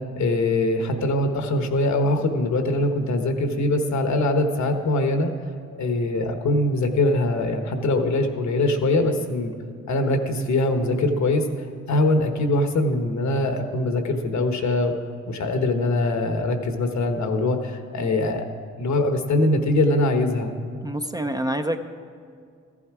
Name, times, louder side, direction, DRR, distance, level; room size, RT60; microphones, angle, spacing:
voice 1, 0.2-5.3 5.8-9.5 9.9-11.5 11.9-14.9 15.3-18.4 18.8-20.5, left 2 dB, 65° left, 6 dB, 1.2 m, -22 dB
voice 2, 20.8-21.8, right 1 dB, 15° right, 6 dB, 0.5 m, -27 dB
15.0 x 11.0 x 4.8 m, 2.2 s
cardioid pair, 105°, 30 cm